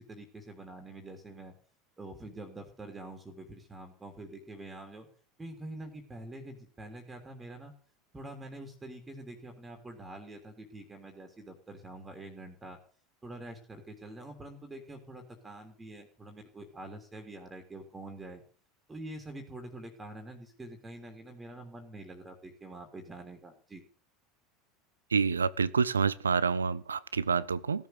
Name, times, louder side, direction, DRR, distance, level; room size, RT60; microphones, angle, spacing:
voice 1, 0.0-1.5 2.0-5.1 5.4-7.7 8.1-12.8 13.2-18.4 18.9-23.8, right 2 dB, 15° right, 4 dB, 3.3 m, -46 dB
voice 2, 25.1-27.9, right 5 dB, 85° right, 19 dB, 0.6 m, -28 dB
17.0 x 7.3 x 8.2 m, 0.43 s
hypercardioid pair, 80°, 0 cm